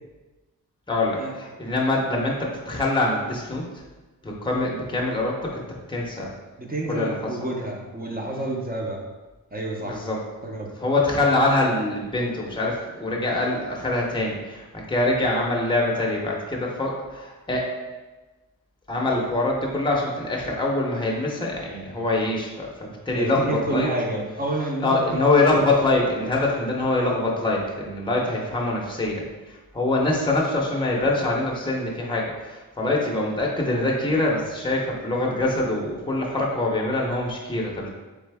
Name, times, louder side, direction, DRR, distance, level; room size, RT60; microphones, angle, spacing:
voice 1, 0.9-3.8 4.2-5.6 5.9-6.3 6.9-7.1 7.4-7.5 9.8-10.2 10.8-17.7 18.9-23.9 24.8-37.9, left 2 dB, 15° left, -2 dB, 0.7 m, -24 dB
voice 2, 6.6-9.0 9.5-10.0 10.4-10.7 23.1-25.6, right 2 dB, 25° right, -1 dB, 0.7 m, -29 dB
3.8 x 3.3 x 3.4 m, 1.2 s
wide cardioid pair, 110°, 36 cm